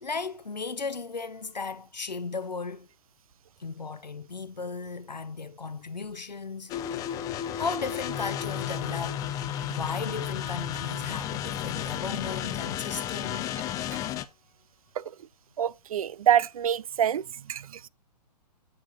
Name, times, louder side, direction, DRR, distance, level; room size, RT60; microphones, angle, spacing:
voice 1, 0.0-2.9 3.6-7.1 7.5-9.3 9.7-13.5 14.0-14.2, left 4 dB, 90° left, 0.7 m, -36 dB
sound 1, 6.7-14.2, left 10 dB, 15° left, 0.5 m, -33 dB
voice 2, 15.6-17.2 17.5-17.9, right 10 dB, 60° right, 0.5 m, -26 dB
8.5 x 6.6 x 4.0 m
figure-of-eight pair, 120°, 21 cm